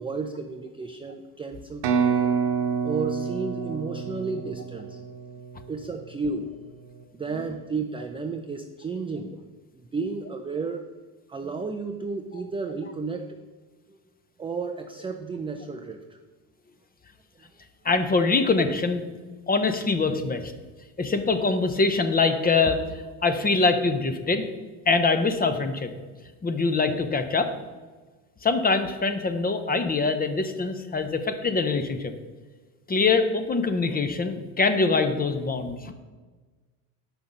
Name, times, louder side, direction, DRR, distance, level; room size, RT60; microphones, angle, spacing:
voice 1, 0.0-2.3 2.8-5.0 5.7-6.6 7.1-9.5 9.7-10.9 11.3-13.4 13.9-14.0 14.4-16.2, right 4 dB, 15° right, 4 dB, 0.4 m, -32 dB
sound 1, 1.8-5.6, right 6 dB, 65° right, 1.0 m, -27 dB
voice 2, 17.8-19.0 19.5-20.5 21.0-22.8 23.2-24.5 24.9-25.9 26.4-27.5 28.4-32.1 32.9-35.9, left 4 dB, 20° left, 8 dB, 0.7 m, -23 dB
5.8 x 5.6 x 5.2 m, 1.3 s
hypercardioid pair, 70°, 46 cm